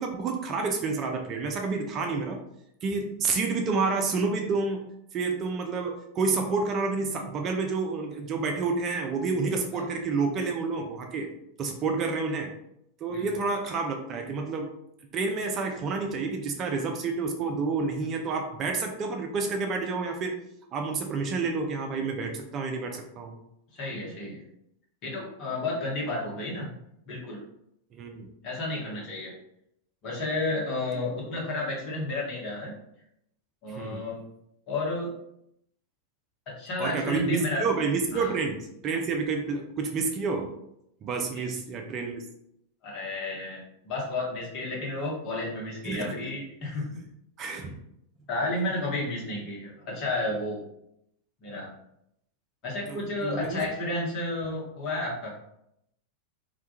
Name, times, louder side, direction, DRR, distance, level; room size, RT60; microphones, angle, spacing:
voice 1, 0.0-2.4 2.8-4.9 5.1-11.3 11.6-12.5 13.0-14.7 15.1-20.4 20.7-23.4 27.9-28.3 33.8-34.1 36.8-40.5 41.0-42.2 45.9-46.1 47.4-47.8 52.9-53.6, right 4 dB, 30° right, 3 dB, 0.3 m, -29 dB
voice 2, 13.1-13.4 23.7-24.4 25.0-26.8 27.1-27.4 28.4-29.3 30.0-32.8 33.6-34.2 34.7-35.1 36.5-37.6 38.1-38.4 41.3-41.5 42.8-47.0 48.3-50.6 51.4-51.7 52.6-55.3, left 2 dB, 40° left, -3 dB, 0.9 m, -32 dB
2.2 x 2.2 x 2.8 m, 0.78 s
figure-of-eight pair, 90°, 0 cm